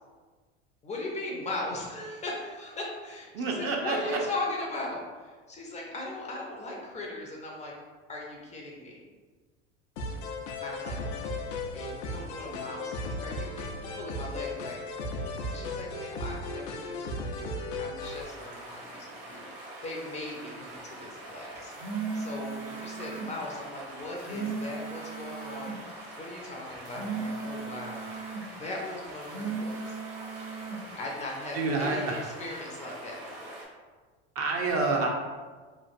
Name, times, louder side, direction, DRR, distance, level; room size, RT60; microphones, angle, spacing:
voice 1, 0.8-7.7 8.1-9.0 10.6-11.0 11.7-14.8 15.5-21.7 22.1-28.1 28.6-30.0 30.9-33.6, left 2 dB, 20° left, -2 dB, 0.4 m, -39 dB
voice 2, 3.3-4.2 31.6-32.2 34.4-35.1, right 3 dB, 45° right, 0 dB, 0.6 m, -28 dB
sound 1, 10.0-18.2, left 2 dB, 90° left, 0.5 m, -36 dB
sound 2, 18.0-33.6, right 1 dB, 65° right, 1.2 m, -45 dB
sound 3, 21.5-23.3 24.0-25.8 26.7-28.5 29.1-30.8, right 4 dB, 90° right, 0.8 m, -36 dB
3.0 x 2.4 x 2.5 m, 1.4 s
supercardioid pair, 110°, 32 cm